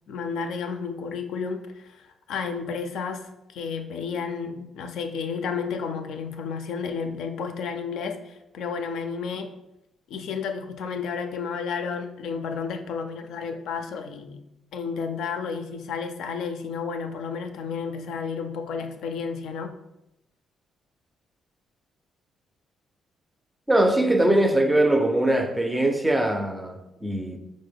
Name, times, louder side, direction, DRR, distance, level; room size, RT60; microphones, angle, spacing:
voice 1, 0.1-9.5 10.1-14.4 14.7-19.7, left 5 dB, 80° left, 0.3 m, -32 dB
voice 2, 23.7-27.4, right 1 dB, 10° right, 0.4 m, -21 dB
4.3 x 2.1 x 3.3 m
cardioid pair, 90°, 0 cm